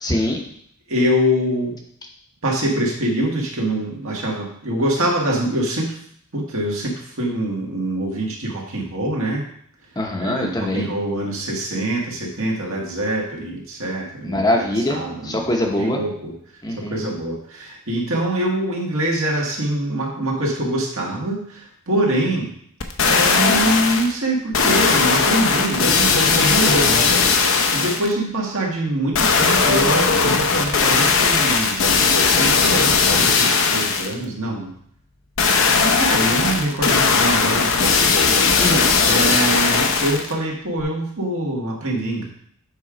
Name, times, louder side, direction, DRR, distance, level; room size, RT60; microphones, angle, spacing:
voice 1, 0.0-0.4 10.0-10.9 14.2-16.0 16.6-17.0 38.6-39.0, left 1 dB, 20° left, 1 dB, 0.8 m, -23 dB
voice 2, 0.9-1.8 2.4-5.9 6.3-9.4 10.2-15.4 15.8-16.3 16.8-22.5 23.0-27.1 27.7-34.7 35.7-38.0 39.1-42.3, right 1 dB, 70° right, -2 dB, 1.8 m, -24 dB
sound 1, 22.8-24.1 24.5-28.1 29.1-34.1 35.4-40.3 40.8-40.9, left 4 dB, 65° left, 0.8 m, -18 dB
7.8 x 3.8 x 5.0 m, 0.65 s
head